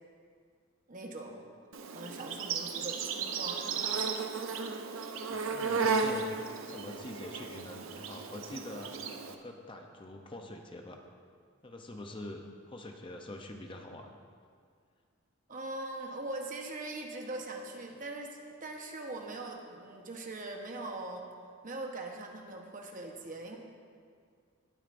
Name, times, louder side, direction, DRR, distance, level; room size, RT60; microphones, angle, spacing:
voice 1, 0.9-1.5 1.9-4.2 15.5-21.3 21.6-23.6, right 2 dB, 40° right, 2 dB, 1.0 m, -41 dB
Insect, 1.7-9.3, right 5 dB, 80° right, 0.6 m, -34 dB
voice 2, 5.3-6.3 6.6-9.0 9.2-11.0 11.6-14.2, left 1 dB, 25° left, 3 dB, 0.6 m, -45 dB
18.5 x 8.8 x 2.6 m, 2.1 s
head